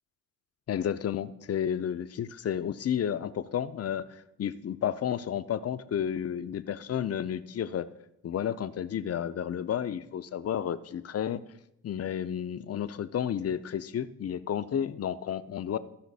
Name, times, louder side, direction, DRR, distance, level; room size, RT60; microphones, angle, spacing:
voice 1, 0.7-7.9 8.2-11.4 11.8-15.8, left 9 dB, 50° left, 13 dB, 0.6 m, -31 dB
14.5 x 5.7 x 4.1 m, 0.82 s
cardioid pair, 75°, 32 cm